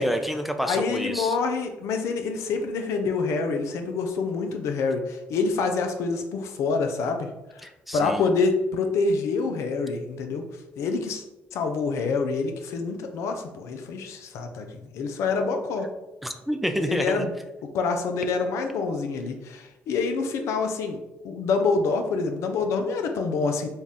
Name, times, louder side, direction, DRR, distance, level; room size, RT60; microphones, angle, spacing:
voice 1, 0.0-1.4 7.6-8.3 16.2-17.3, equal, ahead, 6 dB, 0.4 m, -28 dB
voice 2, 0.6-7.3 7.9-10.4 10.8-11.2 11.5-14.7 14.9-15.9 16.9-17.3 17.7-21.0 21.2-23.7, left 4 dB, 80° left, 5 dB, 0.5 m, -26 dB
4.0 x 2.4 x 3.5 m, 1.0 s
supercardioid pair, 65°, 5 cm